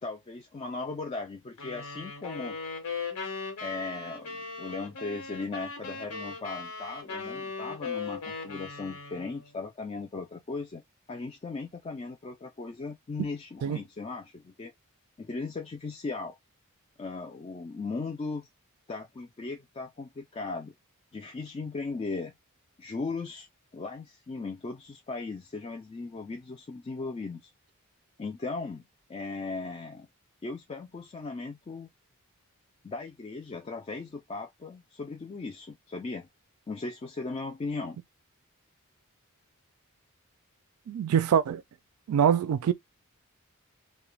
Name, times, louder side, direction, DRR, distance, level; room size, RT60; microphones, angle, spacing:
voice 1, 0.0-2.6 3.6-10.8 11.1-14.7 15.2-16.4 17.0-18.5 18.9-20.7 21.1-22.3 22.8-23.5 23.7-27.5 28.2-28.8 29.1-30.1 30.4-31.9 32.8-36.3 36.7-38.0, left 3 dB, 25° left, 0.3 m, -37 dB
sound 1, 1.6-9.5, left 4 dB, 85° left, 1.0 m, -38 dB
voice 2, 40.9-41.6 42.1-42.7, right 8 dB, 75° right, 0.3 m, -24 dB
2.4 x 2.1 x 3.0 m
head